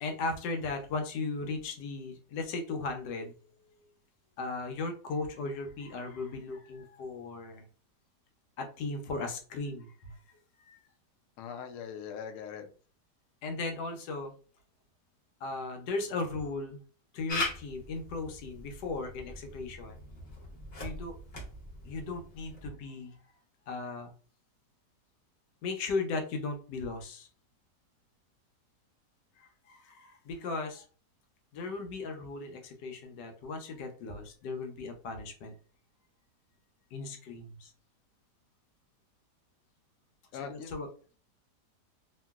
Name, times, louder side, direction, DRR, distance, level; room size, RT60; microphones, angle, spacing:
voice 1, 0.0-3.3 4.4-7.6 8.6-10.2 10.7-10.8 13.4-14.3 15.4-16.8 17.1-20.0 20.8-21.2 21.8-23.2 23.7-24.1 25.6-27.3 29.4-30.9 31.5-35.5 36.9-37.7 40.4-40.9, left 3 dB, 90° left, 4 dB, 1.3 m, -37 dB
voice 2, 11.4-12.7 40.3-40.8, left 7 dB, 70° left, 6 dB, 0.8 m, -41 dB
Camera, 17.3-22.7, left 2 dB, 45° left, 1.0 m, -40 dB
2.9 x 2.6 x 2.3 m, 0.39 s
omnidirectional pair, 1.8 m